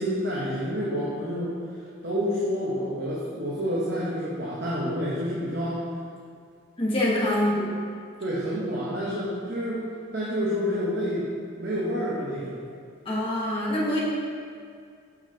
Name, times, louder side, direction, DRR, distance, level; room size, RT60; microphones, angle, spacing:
voice 1, 0.0-1.5 2.0-5.8 7.5-7.6 8.2-9.9 10.1-11.3 11.6-12.6, equal, 55° right, -7 dB, 1.0 m, -28 dB
voice 2, 6.8-7.6 13.0-14.0, left 1 dB, 25° left, -6 dB, 1.2 m, -25 dB
8.1 x 5.6 x 2.8 m, 2.2 s
head